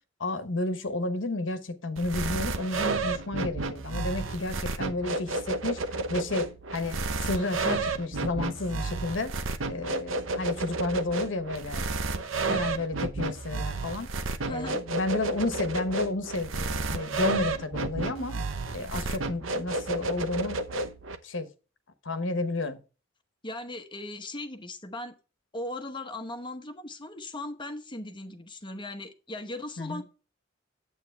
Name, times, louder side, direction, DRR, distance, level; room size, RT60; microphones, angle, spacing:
voice 1, 0.2-9.3 9.7-14.1 14.5-18.4 18.7-20.6 21.2-21.5 22.0-22.8 29.8-30.0, left 2 dB, 70° left, 1.2 m, -32 dB
sound 1, 2.0-21.2, right 3 dB, 90° right, 0.9 m, -31 dB
voice 2, 14.4-14.8 23.4-25.1 25.5-30.0, left 1 dB, 25° left, 1.0 m, -38 dB
9.5 x 8.2 x 3.4 m
head